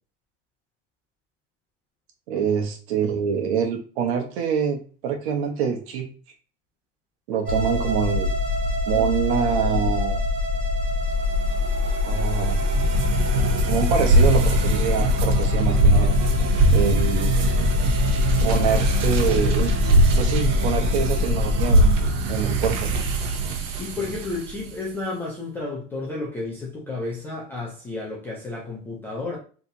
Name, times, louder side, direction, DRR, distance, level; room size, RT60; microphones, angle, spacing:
voice 1, 2.3-6.1 7.3-8.3 8.9-10.2 12.0-12.6 13.7-16.1 16.7-17.3 18.4-19.7 20.2-22.0 22.3-22.9, right 7 dB, 55° right, 1.1 m, -25 dB
sound 1, 7.5-21.9, left 4 dB, 20° right, 1.3 m, -24 dB
sound 2, 11.4-24.7, right 2 dB, 85° right, 1.1 m, -22 dB
voice 2, 23.8-29.4, left 3 dB, 5° left, 0.4 m, -32 dB
4.4 x 3.4 x 2.6 m
supercardioid pair, 175°, 36 cm